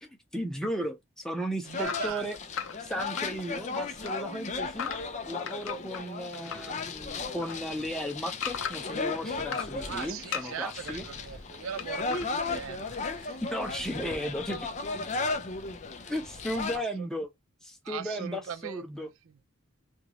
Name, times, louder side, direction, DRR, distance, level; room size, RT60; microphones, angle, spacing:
voice 1, 0.0-2.4 2.8-4.9 5.3-11.0 13.4-14.7 16.0-17.3 17.6-19.1, equal, 5° left, 0.8 m, -35 dB
sound 1, 1.7-16.8, left 3 dB, 35° left, 0.5 m, -36 dB
voice 2, 1.7-2.3 9.8-13.4 17.8-19.1, right 8 dB, 80° right, 0.3 m, -39 dB
sound 2, 1.8-3.7 4.0-6.7 7.0-9.0 9.4-10.9 11.8-12.3, left 7 dB, 80° left, 0.6 m, -38 dB
2.9 x 2.5 x 3.0 m
head